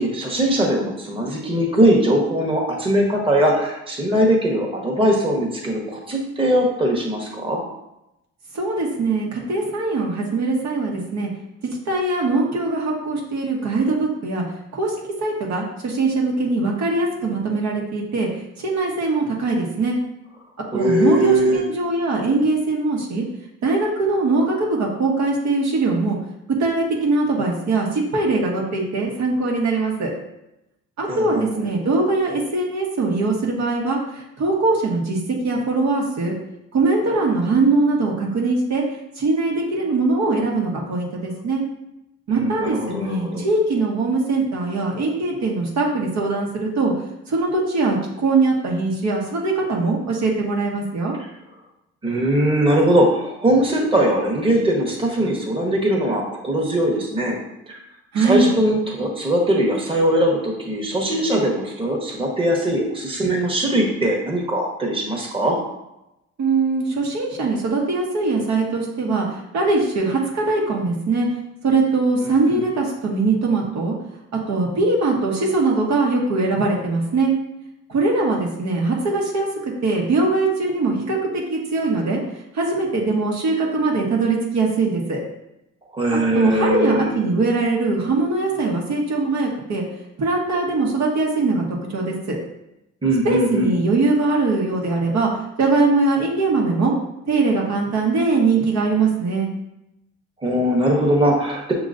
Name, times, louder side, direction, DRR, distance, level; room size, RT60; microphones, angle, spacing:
voice 1, 0.0-7.6 20.7-21.6 31.1-31.7 42.3-43.5 52.0-57.4 58.2-65.6 72.2-72.6 85.9-87.1 93.0-93.7 100.4-101.7, right 1 dB, 15° right, -1 dB, 1.1 m, -20 dB
voice 2, 8.5-11.3 11.9-14.4 14.7-14.9 15.2-18.3 18.6-20.0 20.7-23.2 23.6-26.2 26.6-30.1 31.0-35.2 35.4-36.3 36.7-38.8 39.2-41.6 42.3-46.9 47.3-51.1 58.1-58.5 66.4-71.3 71.6-73.9 74.5-77.3 77.9-82.2 82.5-85.2 86.1-89.8 90.2-91.6 91.9-92.4 93.2-95.3 95.6-96.9 97.3-99.5, right 3 dB, 65° right, -2 dB, 1.2 m, -21 dB
6.5 x 3.0 x 2.5 m, 0.88 s
cardioid pair, 90°, 30 cm